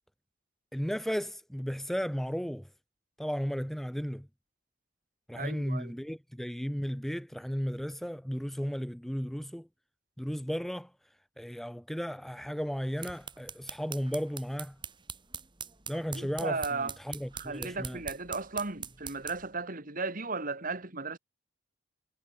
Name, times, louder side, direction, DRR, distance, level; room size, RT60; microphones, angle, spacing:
voice 1, 0.7-2.7 3.2-4.3 5.3-9.7 10.2-10.9 11.4-14.8 15.9-18.0, equal, ahead, 0.6 m, -34 dB
voice 2, 5.3-5.9 16.1-16.9 17.4-21.2, right 3 dB, 45° right, 3.2 m, -35 dB
sound 1, 12.7-19.5, right 6 dB, 25° right, 3.5 m, -44 dB
head